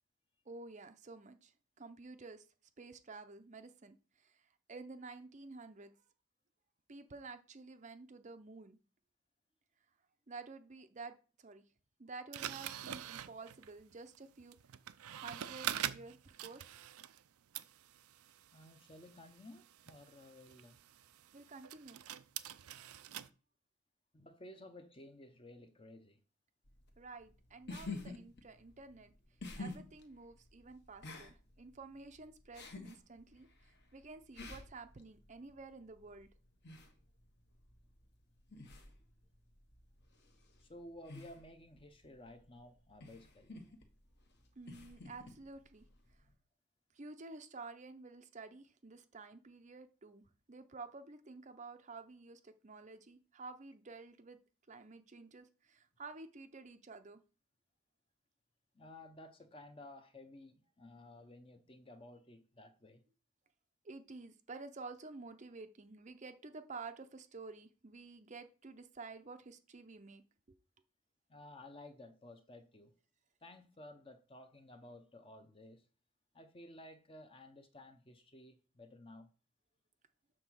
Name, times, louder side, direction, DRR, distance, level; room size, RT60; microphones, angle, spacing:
voice 1, 0.5-2.5 2.8-5.9 6.9-8.8 10.3-11.6 12.0-14.6 15.1-16.7 21.3-22.0 27.0-29.1 29.6-36.3 44.6-45.8 46.9-54.4 54.7-57.2 63.8-70.2 70.5-70.6, right 3 dB, 30° right, 0.6 m, -51 dB
sound 1, 12.3-17.3 17.5-23.3, right 11 dB, 85° right, 0.5 m, -45 dB
voice 2, 18.5-20.8 22.7-22.9 24.1-26.2 40.6-43.6 58.7-63.0 71.3-72.9 73.4-75.8 76.3-79.3, left 1 dB, 25° left, 0.8 m, -55 dB
sound 2, 26.7-46.3, left 3 dB, 50° left, 1.3 m, -51 dB
7.6 x 3.9 x 6.2 m
head